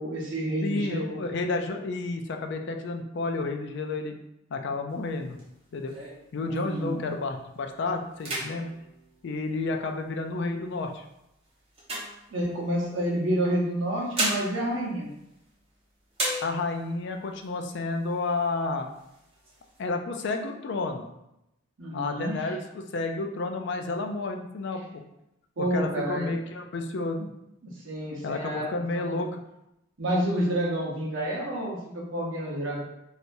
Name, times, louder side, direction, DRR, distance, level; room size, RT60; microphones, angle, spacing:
voice 1, 0.0-1.2 6.4-7.1 12.3-15.1 21.8-22.5 25.6-26.3 27.6-29.2 30.0-32.8, right 1 dB, 70° right, -3 dB, 0.9 m, -29 dB
voice 2, 0.6-4.1 4.5-5.4 5.7-5.9 6.3-8.7 9.2-11.0 16.4-18.9 19.8-21.1 21.9-25.0 25.6-27.3 28.2-29.4, left 3 dB, 60° left, 5 dB, 0.4 m, -31 dB
sound 1, 4.9-7.1 7.5-7.8 8.1-10.0 10.7-12.9 13.7-15.8 16.1-17.0 17.4-17.5 17.8-18.5 18.9-19.8, right 1 dB, 30° right, 1.0 m, -36 dB
3.2 x 2.7 x 2.6 m, 0.85 s
head